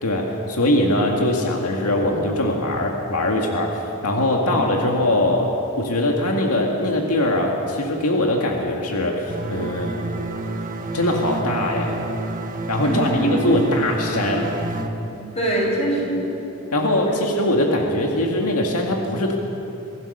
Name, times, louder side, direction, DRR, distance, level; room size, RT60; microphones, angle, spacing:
voice 1, 0.0-5.5 5.8-10.0 10.9-12.0 12.7-14.5 16.7-19.4, left 1 dB, 85° left, 0 dB, 2.0 m, -21 dB
sound 1, 9.3-14.9, right 2 dB, 40° right, 1.3 m, -29 dB
voice 2, 12.8-13.3 13.6-13.7 15.1-16.2 17.1-17.2, right 1 dB, 30° left, -2 dB, 5.7 m, -24 dB
24.5 x 16.0 x 6.8 m, 2.9 s
head